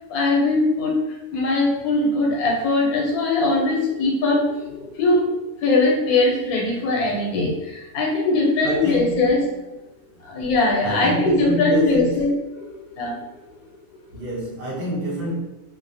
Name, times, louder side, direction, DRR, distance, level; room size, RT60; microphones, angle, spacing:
voice 1, 0.1-5.3 5.6-9.4 10.2-13.2, left 2 dB, 85° left, -1 dB, 1.1 m, -21 dB
voice 2, 8.6-9.5 10.8-12.3 14.1-15.4, right 1 dB, 45° right, -6 dB, 1.0 m, -27 dB
2.5 x 2.0 x 2.5 m, 1.0 s
omnidirectional pair, 1.5 m